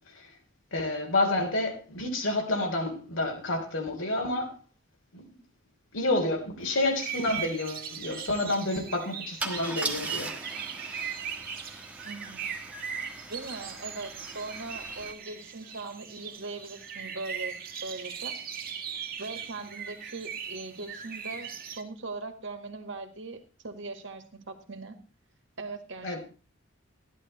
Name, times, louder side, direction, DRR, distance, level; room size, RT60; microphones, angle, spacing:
voice 1, 0.7-4.5 5.1-5.3 5.9-10.3 10.8-11.2 26.0-26.2, left 2 dB, 80° left, 3.4 m, -29 dB
Car / Engine starting / Idling, 6.8-6.9 7.2-7.4 9.4-15.1, right 2 dB, 5° right, 1.4 m, -40 dB
sound 1, 6.9-21.8, right 7 dB, 50° right, 1.9 m, -39 dB
voice 2, 12.0-12.5 13.3-17.6 17.8-18.4 19.2-25.0 25.6-26.2, right 3 dB, 65° right, 1.9 m, -40 dB
14.0 x 11.0 x 4.2 m
head